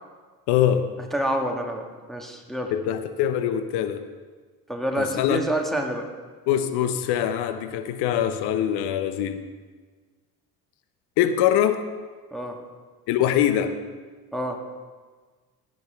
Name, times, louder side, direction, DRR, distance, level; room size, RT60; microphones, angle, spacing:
voice 1, 0.5-0.9 2.7-4.0 5.0-5.4 6.5-9.4 11.2-11.8 13.1-13.8, left 10 dB, 55° left, 10 dB, 0.9 m, -23 dB
voice 2, 1.1-2.7 4.7-6.1 12.3-12.6 14.3-14.6, right 1 dB, ahead, 1 dB, 1.5 m, -28 dB
16.0 x 7.8 x 3.5 m, 1.4 s
figure-of-eight pair, 55°, 46 cm